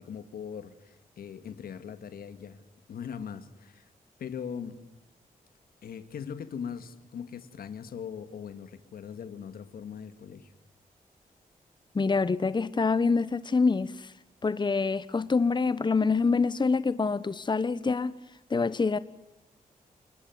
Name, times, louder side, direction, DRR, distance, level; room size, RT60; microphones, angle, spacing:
voice 1, 0.0-2.6 2.9-3.9 4.2-4.8 5.8-10.5, left 7 dB, 90° left, 2.0 m, -40 dB
voice 2, 11.9-14.1 14.4-18.1 18.5-19.0, left 4 dB, 30° left, 1.0 m, -26 dB
29.5 x 21.0 x 9.4 m
cardioid pair, 80°, 15 cm